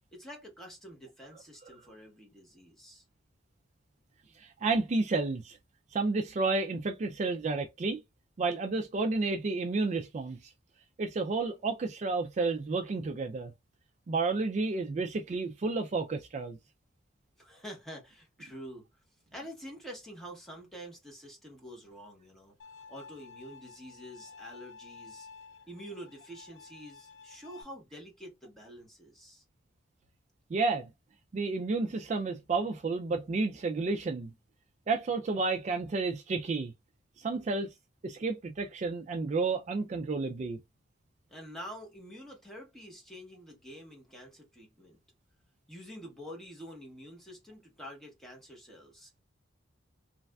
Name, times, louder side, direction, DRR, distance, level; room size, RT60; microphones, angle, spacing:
voice 1, 0.1-3.0 17.4-18.9 19.3-22.5 22.9-25.3 25.7-29.4 41.3-45.0 45.7-49.2, equal, ahead, 0.9 m, -47 dB
voice 2, 4.3-5.6 5.9-8.0 8.4-10.5 11.0-13.5 14.1-16.6 30.5-30.9 31.3-34.3 34.9-36.7 37.2-37.7 38.0-40.6, right 3 dB, 40° right, 0.3 m, -31 dB
Bowed string instrument, 22.6-27.6, left 5 dB, 75° left, 0.5 m, -51 dB
3.1 x 2.4 x 2.2 m
head